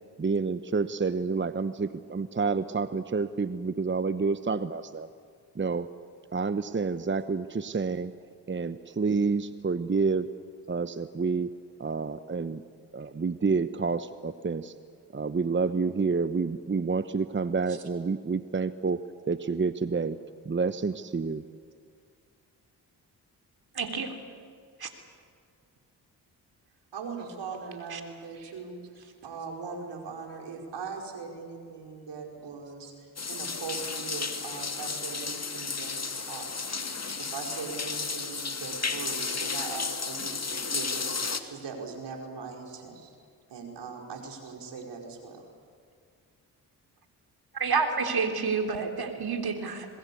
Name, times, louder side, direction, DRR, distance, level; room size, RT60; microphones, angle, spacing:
voice 1, 0.2-5.1 5.5-5.9 6.3-8.1 8.5-10.3 10.7-11.5 11.8-12.6 12.9-14.7 15.1-19.0 19.3-20.2 20.4-21.5, right 4 dB, 25° right, 13 dB, 1.0 m, -28 dB
voice 2, 23.8-24.1 24.8-24.9 27.9-28.0 47.6-49.9, right 5 dB, 60° right, 6 dB, 3.7 m, -29 dB
voice 3, 26.9-28.8 29.2-36.8 37.2-43.1 43.5-45.4, right 5 dB, 75° right, 3 dB, 4.9 m, -40 dB
sound 1, 33.2-41.4, left 4 dB, 35° left, 2.3 m, -33 dB
26.5 x 20.5 x 8.5 m, 2.2 s
supercardioid pair, 45°, 42 cm